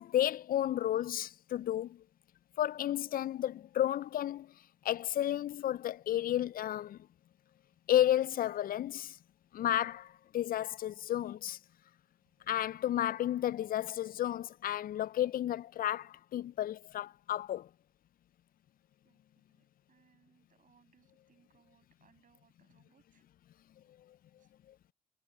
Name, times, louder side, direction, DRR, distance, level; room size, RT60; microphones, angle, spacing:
voice 1, 0.0-2.0 2.6-4.5 4.8-7.0 7.9-9.2 9.5-11.6 12.5-17.7, left 12 dB, 50° left, 0.6 m, -32 dB
voice 2, 19.0-23.2 24.4-24.5, right 7 dB, 50° right, 6.5 m, -69 dB
hypercardioid pair, 50°, 18 cm